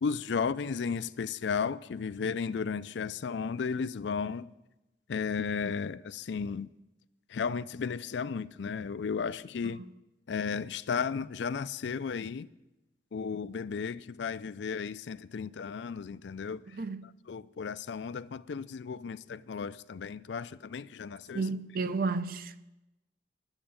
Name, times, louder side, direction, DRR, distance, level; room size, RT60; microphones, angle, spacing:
voice 1, 0.0-4.5 5.1-6.7 7.3-9.8 10.3-12.5 13.1-16.8 17.3-21.4, left 5 dB, 75° left, 0.4 m, -34 dB
voice 2, 16.7-17.0 21.3-22.7, right 3 dB, 55° right, 0.6 m, -32 dB
10.5 x 8.9 x 8.8 m
head